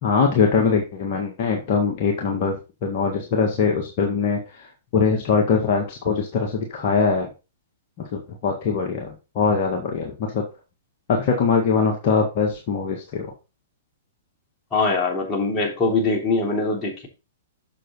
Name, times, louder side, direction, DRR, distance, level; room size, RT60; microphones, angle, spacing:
voice 1, 0.0-7.3 8.1-10.5 11.1-13.3, left 5 dB, 45° left, 0 dB, 1.8 m, -22 dB
voice 2, 14.7-17.1, left 3 dB, 25° left, -1 dB, 3.2 m, -22 dB
7.6 x 6.7 x 4.1 m, 0.29 s
figure-of-eight pair, 110°, 0 cm